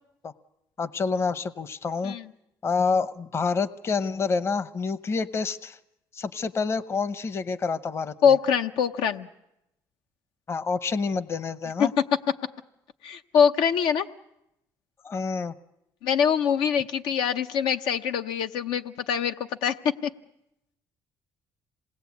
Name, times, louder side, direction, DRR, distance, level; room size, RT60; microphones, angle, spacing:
voice 1, 0.8-2.2 2.6-5.8 6.1-8.4 10.5-11.9 15.0-15.5, left 4 dB, 35° left, 15 dB, 0.8 m, -28 dB
voice 2, 8.2-9.3 11.8-11.9 13.0-14.1 16.0-19.4 19.6-19.8 20.0-20.1, left 7 dB, 90° left, 7 dB, 0.9 m, -23 dB
27.0 x 19.5 x 8.4 m, 0.86 s
cardioid pair, 110°, 8 cm